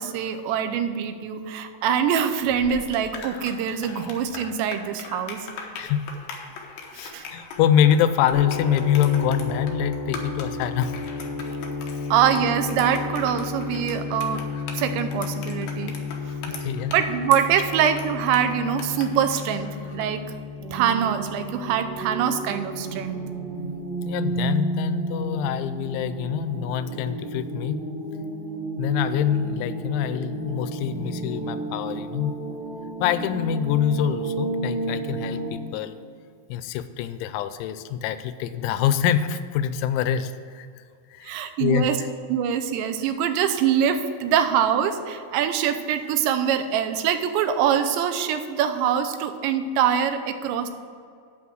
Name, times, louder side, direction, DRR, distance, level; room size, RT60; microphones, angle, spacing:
voice 1, 0.0-5.5 7.0-7.3 12.1-14.4 14.7-15.9 16.9-20.2 20.7-23.2 41.2-42.0 42.3-50.7, right 8 dB, 80° right, 8 dB, 2.9 m, -24 dB
sound 1, 2.4-20.2, left 5 dB, 70° left, 2.3 m, -40 dB
voice 2, 6.9-11.0 16.5-16.9 23.5-23.8 24.0-27.8 28.8-32.3 33.0-36.0 36.5-40.8 41.1-41.9, left 9 dB, 85° left, 12 dB, 2.9 m, -25 dB
sound 2, 8.3-24.2, left 4 dB, 55° left, 3.9 m, -33 dB
sound 3, 20.6-35.5, right 2 dB, 50° right, 3.1 m, -32 dB
8.3 x 5.9 x 7.7 m, 2.3 s
omnidirectional pair, 5.2 m